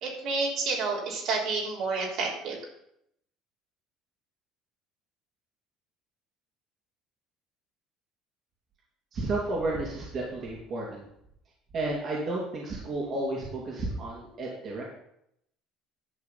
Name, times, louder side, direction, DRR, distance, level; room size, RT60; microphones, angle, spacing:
voice 1, 0.0-2.6, right 4 dB, 65° right, -2 dB, 3.5 m, -29 dB
voice 2, 9.1-11.1 11.7-14.8, right 2 dB, 45° right, -4 dB, 2.6 m, -32 dB
11.0 x 4.9 x 7.1 m, 0.77 s
cardioid pair, 115°, 0 cm